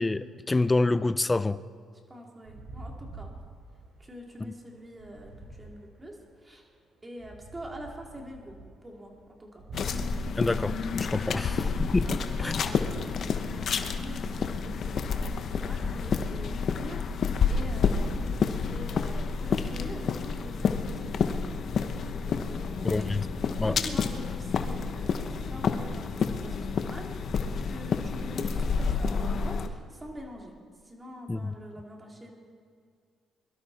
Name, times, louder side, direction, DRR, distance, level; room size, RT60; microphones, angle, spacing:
voice 1, 0.0-1.6 4.4-4.5 10.4-12.6 22.8-23.3 23.6-23.8 31.3-31.5, left 2 dB, 20° left, 15 dB, 0.5 m, -27 dB
voice 2, 2.1-3.4 4.0-6.7 7.0-8.6 8.8-9.6 11.2-11.4 12.0-23.1 23.7-27.2 27.6-30.5 30.8-32.3, equal, 20° right, 0 dB, 3.2 m, -45 dB
sound 1, 2.5-6.4 7.2-13.5, right 2 dB, 70° right, 3.7 m, -46 dB
sound 2, 9.7-29.7, left 5 dB, 60° left, 1.0 m, -29 dB
22.5 x 12.5 x 4.3 m, 2.1 s
cardioid pair, 90°, 0 cm